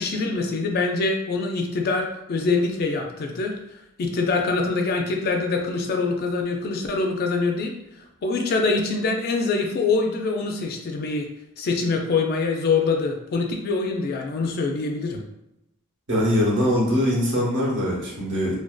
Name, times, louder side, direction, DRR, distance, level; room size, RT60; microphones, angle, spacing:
voice 1, 0.0-3.5 4.0-7.7 8.2-11.3 11.6-15.2, left 3 dB, 45° left, 3 dB, 0.3 m, -24 dB
voice 2, 16.1-18.6, equal, 55° right, -4 dB, 0.8 m, -22 dB
2.5 x 2.2 x 2.2 m, 0.90 s
head